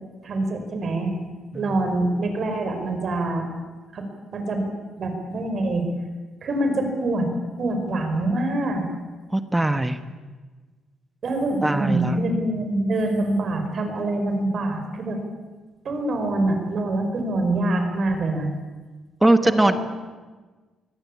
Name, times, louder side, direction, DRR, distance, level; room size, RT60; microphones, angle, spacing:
voice 1, 0.2-1.1 1.5-3.5 3.9-4.1 4.3-4.7 5.0-5.9 6.4-7.3 7.6-8.8 11.2-15.2 15.8-18.5 19.4-19.8, right 2 dB, 50° right, 5 dB, 5.3 m, -25 dB
voice 2, 1.5-1.9 9.3-10.0 11.6-12.2 19.2-19.7, right 1 dB, 10° right, 10 dB, 1.3 m, -21 dB
23.5 x 18.0 x 8.7 m, 1.3 s
cardioid pair, 90°, 0 cm